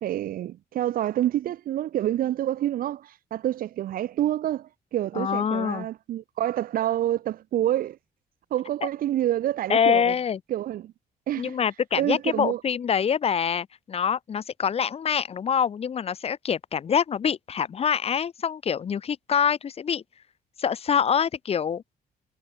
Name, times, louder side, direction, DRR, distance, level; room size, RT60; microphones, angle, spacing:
voice 1, 0.0-8.0 8.5-10.1 10.5-10.9 11.3-11.6 11.9-12.6, right 12 dB, 60° right, 0.7 m, -27 dB
voice 2, 5.1-5.9 9.7-10.4 11.4-20.0 20.6-21.8, left 7 dB, 40° left, 1.4 m, -25 dB
cardioid pair, 135°, 16 cm